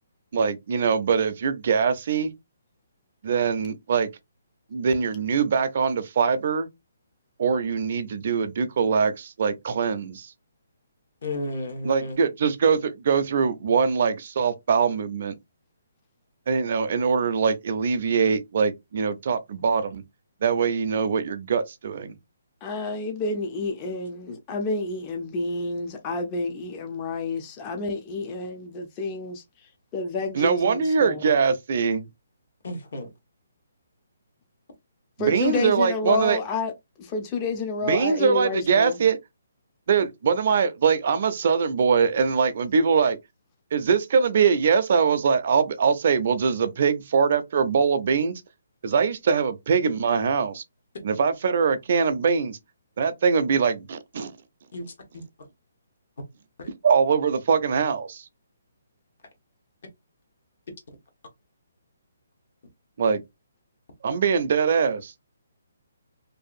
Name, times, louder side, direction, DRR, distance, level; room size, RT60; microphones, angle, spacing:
voice 1, 0.3-2.3 3.2-4.1 4.7-6.7 7.4-10.3 11.8-15.3 16.5-20.0 20.4-22.1 30.3-32.1 35.2-36.4 37.8-39.2 39.9-43.2 43.7-48.4 48.8-50.6 51.0-52.6 53.0-54.3 56.8-58.2 63.0-63.2 64.0-65.1, right 6 dB, 50° right, 0.4 m, -22 dB
voice 2, 11.2-12.2 32.6-33.1 54.7-55.2, left 1 dB, 60° left, 1.1 m, -33 dB
voice 3, 22.6-29.4 29.9-31.2 35.2-36.7 37.0-39.0, left 3 dB, 25° left, 0.5 m, -29 dB
2.6 x 2.4 x 2.4 m
hypercardioid pair, 155°, 0 cm